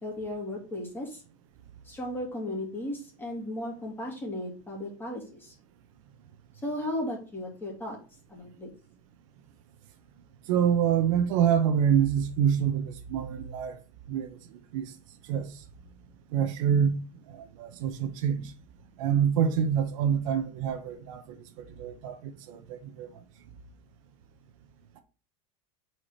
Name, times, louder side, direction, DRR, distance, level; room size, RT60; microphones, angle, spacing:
voice 1, 0.0-1.2 1.8-5.5 6.6-8.0 8.3-8.7, left 1 dB, 10° left, 2.7 m, -35 dB
voice 2, 10.5-13.8 14.1-14.9 15.2-15.5 16.3-18.5 19.0-23.1, right 8 dB, 70° right, 1.0 m, -27 dB
4.9 x 4.7 x 5.7 m
supercardioid pair, 145°, 18 cm